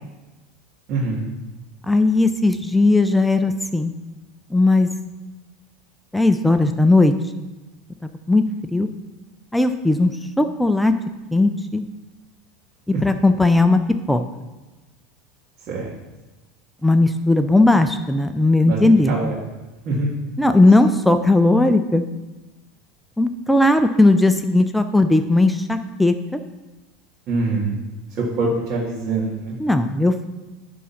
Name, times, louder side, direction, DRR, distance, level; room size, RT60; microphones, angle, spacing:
voice 1, 0.9-1.3 15.7-15.9 18.6-18.8 19.1-19.4 19.9-20.1 27.3-27.7 28.2-29.6, right 3 dB, 50° right, -5 dB, 1.8 m, -24 dB
voice 2, 1.9-3.9 4.5-4.9 6.1-7.1 8.3-8.4 8.7-8.9 9.5-10.1 10.4-10.9 11.3-11.8 13.0-13.8 14.1-14.2 16.8-19.3 20.4-22.1 23.2-26.4 29.6-30.3, left 2 dB, 5° left, 9 dB, 0.5 m, -17 dB
9.8 x 3.7 x 5.8 m, 1.1 s
hypercardioid pair, 95°, 0 cm